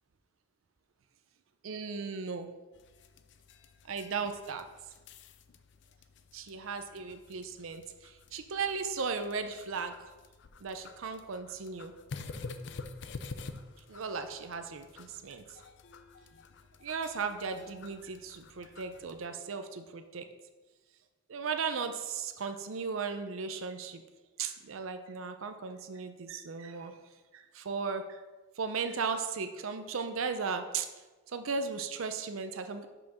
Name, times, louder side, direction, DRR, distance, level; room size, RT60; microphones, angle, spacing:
voice 1, 1.6-2.5 3.9-4.7 6.3-9.9 10.6-11.9 13.9-15.6 16.8-20.3 21.3-24.0 24.4-27.0 27.3-28.2 28.6-30.9 31.3-32.9, right 5 dB, 80° right, 8 dB, 0.5 m, -36 dB
sound 1, 2.7-19.3, left 3 dB, 60° left, 0.5 m, -49 dB
5.8 x 4.9 x 6.3 m, 1.2 s
head